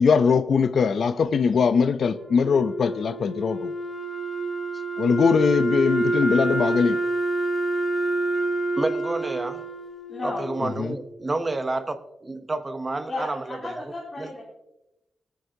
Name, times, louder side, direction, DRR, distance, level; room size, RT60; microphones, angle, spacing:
voice 1, 0.0-3.7 5.0-7.0 10.6-10.9, left 5 dB, 60° left, 0.5 m, -21 dB
Wind instrument woodwind instrument, 2.1-11.2, right 2 dB, 5° left, 2.5 m, -28 dB
voice 2, 8.8-9.6 10.2-13.7 14.2-14.3, right 2 dB, 20° right, 0.7 m, -29 dB
voice 3, 10.1-10.5 13.1-14.4, left 2 dB, 30° left, 2.9 m, -33 dB
18.0 x 9.4 x 2.7 m
wide cardioid pair, 160°, 0 cm